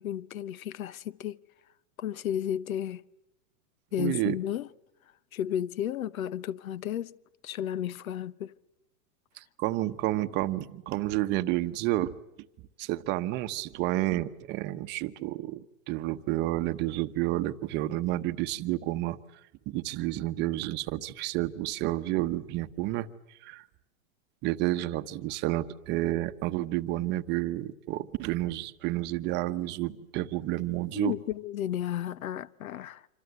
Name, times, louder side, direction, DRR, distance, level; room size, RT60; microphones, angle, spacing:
voice 1, 0.0-1.4 2.0-3.0 3.9-4.7 5.3-7.2 7.4-8.5 30.9-33.1, left 10 dB, 85° left, 1.0 m, -33 dB
voice 2, 4.0-4.3 9.4-12.2 12.8-19.2 19.7-23.6 24.4-31.2, right 16 dB, 25° right, 0.9 m, -30 dB
26.5 x 26.0 x 8.1 m
supercardioid pair, 155°, 40 cm